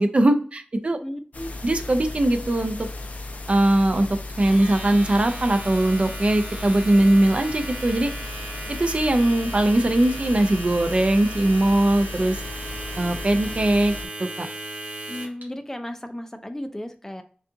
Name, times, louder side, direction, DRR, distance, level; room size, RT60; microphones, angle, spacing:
voice 1, 0.0-1.0 1.6-2.8 3.5-4.1 4.4-8.1 8.7-12.4 13.0-14.5, right 1 dB, 45° right, 7 dB, 0.5 m, -20 dB
voice 2, 1.0-1.5 15.1-17.2, left 1 dB, 15° left, 8 dB, 0.5 m, -34 dB
sound 1, 1.3-14.0, left 2 dB, 60° left, 0.6 m, -35 dB
Domestic sounds home sounds, 4.3-15.4, right 2 dB, 85° right, 1.4 m, -37 dB
5.4 x 2.4 x 2.6 m, 0.42 s
wide cardioid pair, 75°, 3 cm